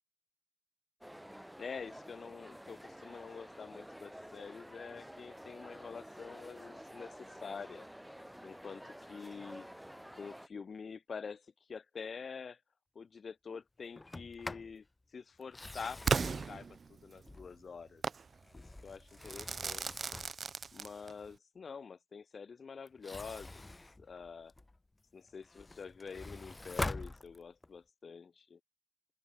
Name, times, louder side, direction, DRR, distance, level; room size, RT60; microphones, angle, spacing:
sound 1, 1.0-10.5, equal, 5° right, 1.3 m, -51 dB
voice 1, 1.6-7.9 8.4-9.7 10.1-12.6 13.0-14.9 15.1-16.2 16.5-18.0 18.5-20.1 20.7-23.7 24.0-24.5 25.1-28.6, left 5 dB, 70° left, 3.7 m, -47 dB
Sliding door, 14.0-14.8 15.4-17.8 18.3-20.5 22.9-24.8 25.3-27.8, left 2 dB, 25° left, 2.5 m, -45 dB
Crackle / Fireworks, 16.1-17.2 18.0-18.3 19.3-21.3, right 5 dB, 65° right, 0.5 m, -35 dB
open air
wide cardioid pair, 75°, 0 cm